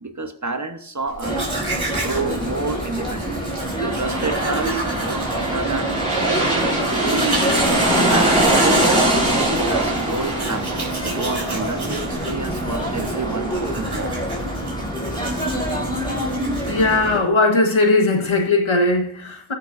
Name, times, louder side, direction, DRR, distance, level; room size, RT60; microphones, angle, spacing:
voice 1, 0.0-1.5 1.9-3.4 3.8-5.9 6.2-9.0 9.3-10.7 11.0-14.2, right 3 dB, 35° right, 1.1 m, -29 dB
Domestic sounds home sounds, 1.1-17.2, right 2 dB, 55° right, 4.4 m, -33 dB
sound 1, 1.2-17.2, right 1 dB, 10° left, 4.4 m, -27 dB
sound 2, 3.5-14.9 15.2-15.3, right 1 dB, 15° right, 5.0 m, -23 dB
voice 2, 16.7-19.5, left 2 dB, 75° left, 1.5 m, -18 dB
19.0 x 6.4 x 2.6 m
wide cardioid pair, 55°, 48 cm